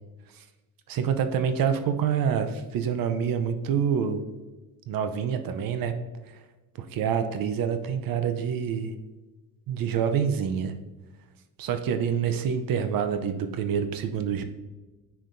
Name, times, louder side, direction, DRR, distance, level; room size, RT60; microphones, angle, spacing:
voice 1, 0.9-4.2 4.9-5.9 6.8-8.9 9.7-10.7 11.6-14.4, right 7 dB, 65° right, 8 dB, 0.7 m, -27 dB
8.7 x 4.9 x 2.7 m, 1.2 s
supercardioid pair, 80°, 37 cm